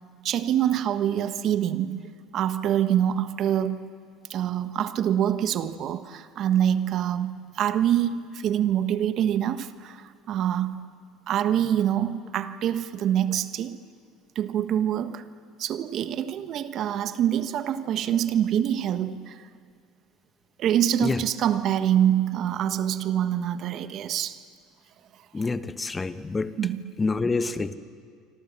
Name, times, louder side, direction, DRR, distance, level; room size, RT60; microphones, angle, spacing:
voice 1, 0.2-2.0 2.3-3.9 4.3-10.9 11.3-13.8 14.3-15.2 15.6-19.4 20.6-24.4 26.6-26.8, right 10 dB, 55° right, 11 dB, 1.3 m, -25 dB
voice 2, 25.3-26.5 27.0-27.7, left 3 dB, 20° left, 11 dB, 1.2 m, -27 dB
28.0 x 25.5 x 7.6 m, 2.1 s
hypercardioid pair, 80°, 0 cm